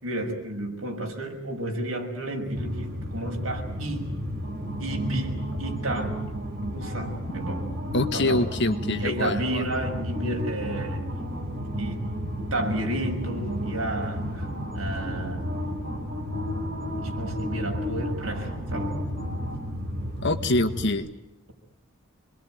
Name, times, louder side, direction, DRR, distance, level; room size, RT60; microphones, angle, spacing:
voice 1, 0.0-4.2 4.8-6.2 6.7-7.7 8.1-8.4 9.0-11.0 11.8-12.1 12.5-14.5 14.7-15.4 17.0-19.0, right 1 dB, 70° right, 2 dB, 6.3 m, -31 dB
sound 1, 2.6-20.9, equal, 45° right, 4.7 m, -32 dB
voice 2, 7.9-9.6 20.2-21.1, left 2 dB, 55° left, 8 dB, 1.7 m, -25 dB
27.0 x 22.0 x 9.3 m, 0.88 s
head